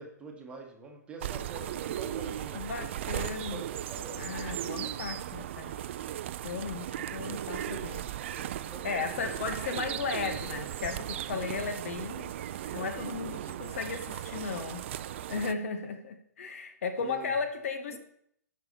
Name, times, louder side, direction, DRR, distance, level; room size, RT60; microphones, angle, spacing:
voice 1, 0.0-4.2 8.3-9.4 17.0-17.3 17.9-18.0, right 3 dB, 10° right, 1 dB, 1.5 m, -46 dB
sound 1, 1.2-15.5, right 11 dB, 45° right, 0.4 m, -37 dB
voice 2, 2.5-3.6 4.2-5.8 6.4-8.0 8.8-12.3 12.7-14.9 15.3-18.0, left 5 dB, 50° left, 7 dB, 1.0 m, -35 dB
12.5 x 5.6 x 4.2 m, 0.69 s
figure-of-eight pair, 115°, 9 cm